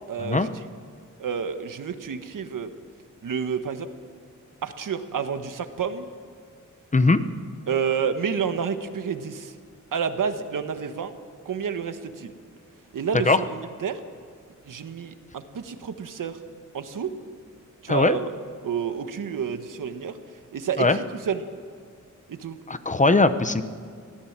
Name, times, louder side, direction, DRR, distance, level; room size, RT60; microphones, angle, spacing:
voice 1, 0.1-0.6 1.2-2.7 3.2-3.9 4.6-6.1 7.7-9.5 9.9-11.1 11.4-12.3 12.9-14.0 14.7-16.4 16.7-17.1 17.8-18.3 18.6-20.2 20.5-21.5 22.3-22.6, right 6 dB, 85° right, 8 dB, 1.5 m, -29 dB
voice 2, 22.7-23.6, left 3 dB, 25° left, 11 dB, 0.8 m, -19 dB
24.0 x 17.5 x 7.5 m, 2.1 s
wide cardioid pair, 155°, 31 cm